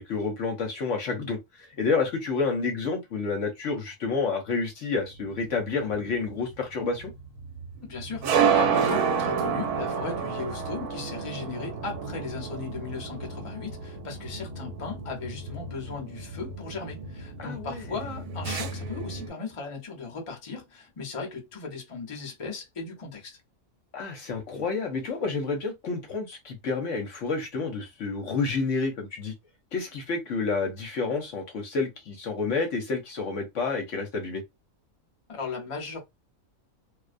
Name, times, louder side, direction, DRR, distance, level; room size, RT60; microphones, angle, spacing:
voice 1, 0.0-7.1 17.4-17.8 23.9-29.3 29.7-34.4, left 4 dB, 65° left, 0.9 m, -29 dB
sound 1, 5.3-19.3, right 6 dB, 85° right, 1.1 m, -30 dB
voice 2, 7.8-23.4 35.3-36.0, left 4 dB, 35° left, 0.5 m, -37 dB
2.4 x 2.1 x 2.5 m
omnidirectional pair, 1.6 m